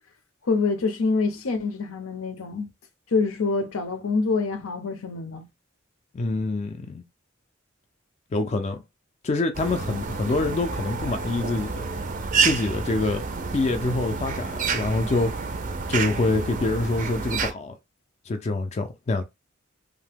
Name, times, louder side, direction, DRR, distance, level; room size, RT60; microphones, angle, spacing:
voice 1, 0.5-2.7 3.1-5.5, left 4 dB, 85° left, 0.6 m, -26 dB
voice 2, 6.1-7.0 8.3-8.8 9.2-11.8 12.4-13.2 13.5-15.6 15.9-17.8 18.3-19.2, left 2 dB, 30° left, 0.3 m, -26 dB
sound 1, 9.5-17.5, right 5 dB, 40° right, 0.4 m, -29 dB
2.8 x 2.1 x 3.4 m
head